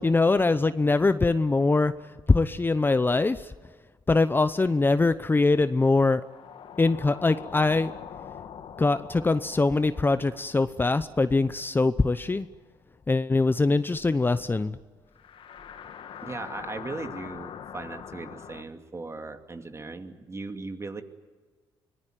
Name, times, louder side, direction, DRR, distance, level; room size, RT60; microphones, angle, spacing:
voice 1, 0.0-1.9 2.3-3.5 4.1-6.2 6.8-7.9 8.8-12.5 13.1-14.8, left 3 dB, 20° left, 13 dB, 0.8 m, -23 dB
sound 1, 6.2-12.8 13.0-13.1 15.1-18.6, left 8 dB, 65° left, 1.8 m, -44 dB
voice 2, 16.2-21.0, right 3 dB, 30° right, 7 dB, 2.5 m, -38 dB
24.5 x 19.0 x 9.5 m, 1.5 s
supercardioid pair, 70°, 10 cm